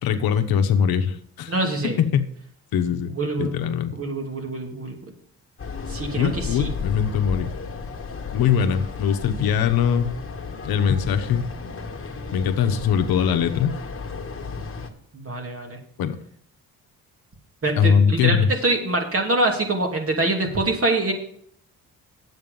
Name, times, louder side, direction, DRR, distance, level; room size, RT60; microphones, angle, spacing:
voice 1, 0.0-1.5 2.0-2.3 2.7-3.9 6.2-7.5 8.3-10.1 10.6-11.5 12.3-13.7 16.0-16.2 17.8-18.5, left 7 dB, 85° left, 8 dB, 1.1 m, -21 dB
voice 2, 1.5-2.0 3.1-3.5 3.9-5.0 5.9-6.7 15.1-15.8 17.6-21.1, right 2 dB, 40° right, 2 dB, 2.7 m, -24 dB
sound 1, 5.6-14.9, left 4 dB, 35° left, 1.7 m, -34 dB
9.4 x 8.2 x 5.3 m, 0.64 s
cardioid pair, 85°, 36 cm